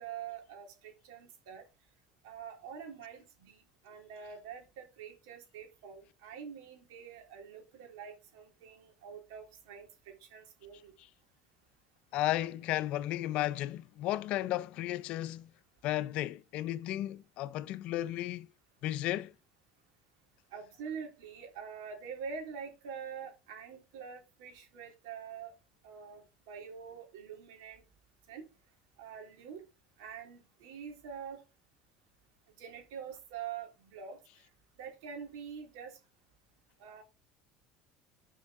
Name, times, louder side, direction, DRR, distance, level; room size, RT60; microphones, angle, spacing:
voice 1, 0.0-1.6 2.2-10.9 20.5-25.5 25.8-27.8 28.3-28.5 29.0-29.7 30.0-31.4 32.6-34.2 34.8-36.0 36.8-37.0, right 7 dB, 85° right, 3.6 m, -45 dB
voice 2, 12.1-15.5 15.8-18.5 18.8-19.3, left 14 dB, 65° left, 0.6 m, -34 dB
7.2 x 5.6 x 5.1 m
supercardioid pair, 95°, 2 cm